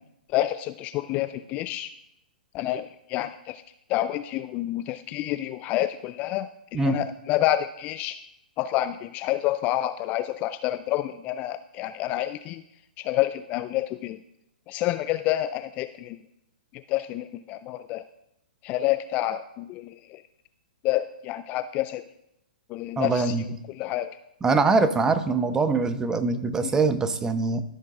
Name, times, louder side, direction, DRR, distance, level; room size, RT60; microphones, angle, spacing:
voice 1, 0.3-1.9 2.5-3.6 3.9-8.2 8.6-12.6 13.0-14.2 14.7-16.2 16.7-18.0 18.6-20.2 20.8-22.0 22.7-24.2 26.6-26.7, left 14 dB, 30° left, 12 dB, 0.3 m, -28 dB
voice 2, 23.0-23.4 24.4-27.6, right 3 dB, 10° right, 11 dB, 0.7 m, -23 dB
14.0 x 6.3 x 3.7 m, 0.83 s
figure-of-eight pair, 120°, 5 cm